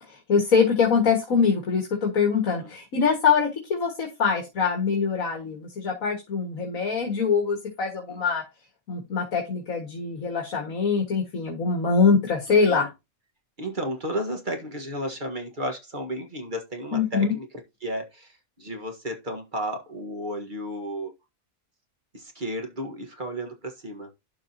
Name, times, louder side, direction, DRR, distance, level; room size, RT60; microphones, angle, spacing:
voice 1, 0.0-8.4 8.9-12.9 16.9-17.3, left 5 dB, 75° left, 2.2 m, -23 dB
voice 2, 12.5-12.9 13.6-17.5 17.8-21.1 22.1-24.1, equal, 35° right, 1.6 m, -33 dB
12.0 x 5.0 x 2.8 m
omnidirectional pair, 1.5 m